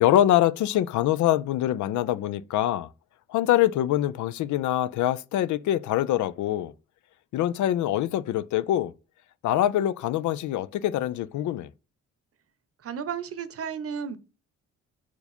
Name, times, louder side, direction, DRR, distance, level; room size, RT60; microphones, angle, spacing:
voice 1, 0.0-2.9 3.3-6.7 7.3-8.9 9.4-11.7, left 12 dB, 75° left, 0.5 m, -24 dB
voice 2, 12.8-14.2, right 7 dB, 50° right, 0.9 m, -33 dB
5.4 x 4.7 x 4.3 m
cardioid pair, 90°, 30 cm